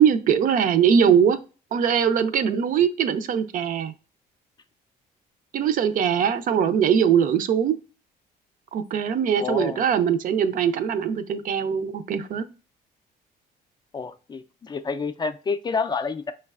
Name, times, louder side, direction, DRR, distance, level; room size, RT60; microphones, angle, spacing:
voice 1, 0.0-1.4 1.7-3.9 5.5-7.8 8.7-12.4, right 8 dB, 55° right, 0.5 m, -21 dB
voice 2, 9.4-9.8 13.9-16.3, left 5 dB, 25° left, 0.4 m, -29 dB
5.2 x 3.2 x 2.3 m
cardioid pair, 110°, 17 cm